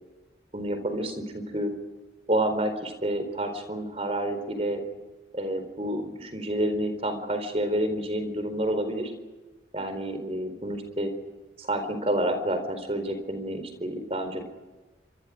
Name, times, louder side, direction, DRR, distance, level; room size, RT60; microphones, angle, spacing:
voice 1, 0.5-1.7 2.3-4.8 5.3-9.1 9.7-11.1 11.6-14.4, right 1 dB, 35° right, 8 dB, 4.3 m, -29 dB
28.0 x 26.0 x 5.1 m, 1.2 s
head